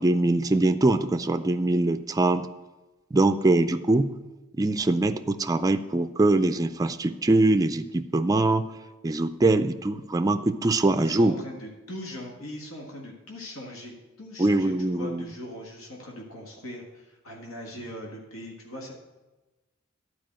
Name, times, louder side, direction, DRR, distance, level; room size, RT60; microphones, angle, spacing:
voice 1, 0.0-2.5 3.1-4.1 4.6-8.7 9.0-11.4 14.4-15.3, right 2 dB, 15° right, 9 dB, 0.3 m, -23 dB
voice 2, 10.9-18.9, left 1 dB, 90° left, 0 dB, 1.7 m, -40 dB
11.5 x 4.8 x 7.6 m, 1.1 s
head